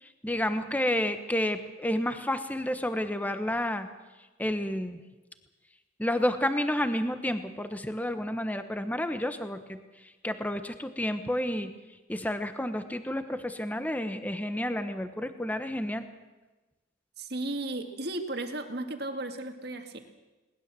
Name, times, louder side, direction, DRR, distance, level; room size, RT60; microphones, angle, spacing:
voice 1, 0.0-3.9 4.4-5.0 6.0-11.7 12.1-16.1, left 1 dB, 10° left, 9 dB, 1.1 m, -30 dB
voice 2, 17.2-20.0, right 2 dB, 55° right, 6 dB, 2.1 m, -35 dB
21.5 x 19.5 x 7.6 m, 1.2 s
head